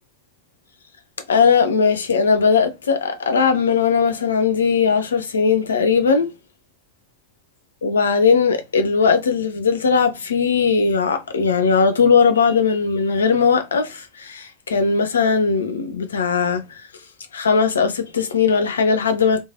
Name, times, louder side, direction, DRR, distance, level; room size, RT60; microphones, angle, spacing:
voice 1, 1.3-6.3 7.8-16.8 17.3-19.4, left 5 dB, 75° left, 0.5 m, -18 dB
3.1 x 2.5 x 2.4 m
figure-of-eight pair, 85°, 0 cm